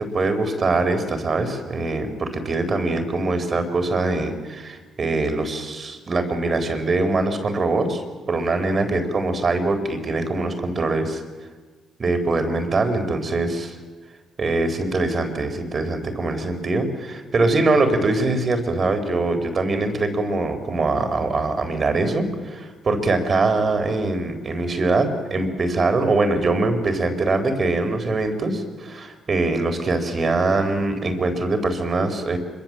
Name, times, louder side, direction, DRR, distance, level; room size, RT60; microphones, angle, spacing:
voice 1, 0.0-8.0 8.3-11.2 12.0-13.8 14.4-32.4, right 3 dB, 40° right, 8 dB, 4.1 m, -23 dB
25.0 x 23.5 x 7.6 m, 1.4 s
cardioid pair, 90°, 0 cm